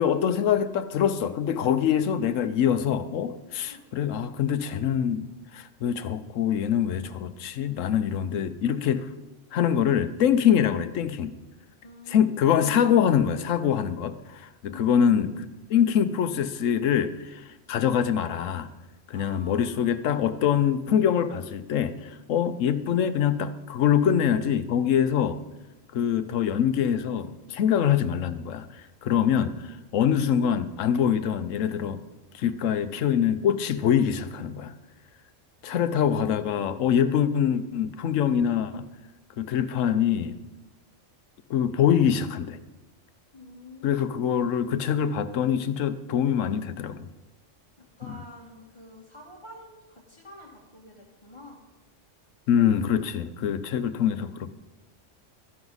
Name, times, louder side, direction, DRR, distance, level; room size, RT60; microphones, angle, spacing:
voice 1, 0.0-9.1 9.5-11.3 12.1-18.7 19.1-25.4 25.9-32.0 32.3-34.7 35.6-38.8 39.4-40.4 41.5-42.6 43.8-47.1 48.1-48.2 52.5-54.5, left 8 dB, 85° left, 12 dB, 1.1 m, -24 dB
voice 2, 11.8-12.5 14.7-14.9 19.1-19.9 32.7-32.9 43.3-44.0 47.8-51.6, left 1 dB, 25° left, -4 dB, 1.5 m, -48 dB
13.5 x 10.5 x 4.0 m, 1.1 s
omnidirectional pair, 1.3 m